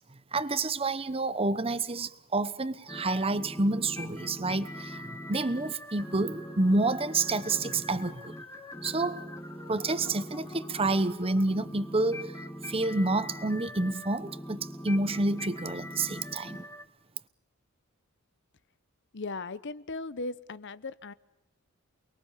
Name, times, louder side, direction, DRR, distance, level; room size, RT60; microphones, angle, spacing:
voice 1, 0.3-8.4 8.8-9.2 9.7-12.3 12.7-16.6, right 2 dB, 25° right, 1.0 m, -29 dB
sound 1, 2.9-16.8, equal, 15° left, 2.1 m, -42 dB
voice 2, 19.1-21.1, left 3 dB, 55° left, 0.9 m, -37 dB
28.5 x 22.0 x 7.3 m
head